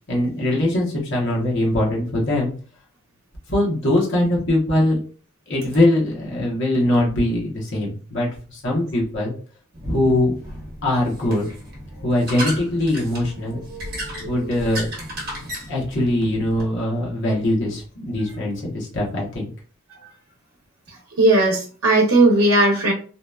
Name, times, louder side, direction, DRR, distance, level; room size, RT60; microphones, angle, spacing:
voice 1, 0.1-2.5 3.5-5.0 5.5-9.3 9.9-10.3 10.8-11.5 12.0-13.6 14.2-14.9 15.7-19.5, left 1 dB, 55° left, -3 dB, 0.8 m, -21 dB
sound 1, 9.7-16.7, equal, 45° right, 1.0 m, -34 dB
voice 2, 21.2-22.9, right 2 dB, 80° right, -1 dB, 0.7 m, -16 dB
2.7 x 2.2 x 2.2 m, 0.39 s
head